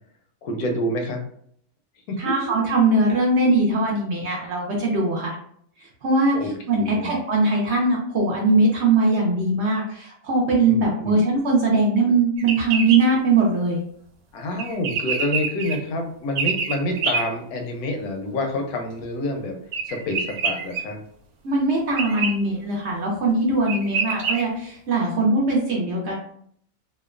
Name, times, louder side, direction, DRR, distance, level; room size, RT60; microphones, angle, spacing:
voice 1, 0.4-1.2 2.1-2.5 6.3-7.2 10.7-11.2 14.3-19.6 19.8-21.0, left 1 dB, 85° left, 4 dB, 1.1 m, -28 dB
voice 2, 2.2-5.4 6.0-6.4 6.7-13.8 21.4-26.1, right 2 dB, 60° right, -2 dB, 0.8 m, -21 dB
sound 1, 12.4-13.0 14.6-15.8 16.4-17.2 19.7-20.8 22.0-22.3 23.3-23.4 23.7-24.4, right 5 dB, 80° right, 1.1 m, -25 dB
2.9 x 2.1 x 2.3 m, 0.64 s
omnidirectional pair, 1.5 m